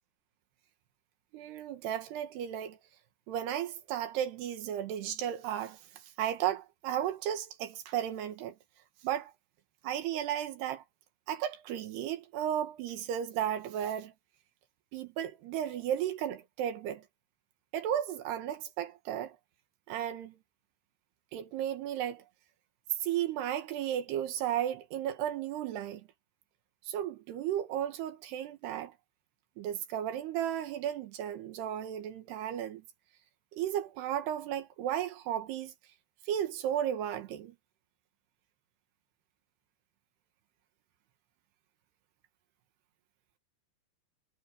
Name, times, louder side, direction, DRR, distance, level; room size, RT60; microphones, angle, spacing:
voice 1, 1.3-2.8 3.3-5.8 6.2-8.6 9.0-9.3 9.8-10.8 11.3-14.1 14.9-17.0 17.7-19.4 19.9-20.4 21.3-22.2 23.0-26.0 26.9-28.9 29.6-32.8 33.5-35.7 36.3-37.6, right 10 dB, 80° right, 3.5 m, -34 dB
omnidirectional pair, 4.7 m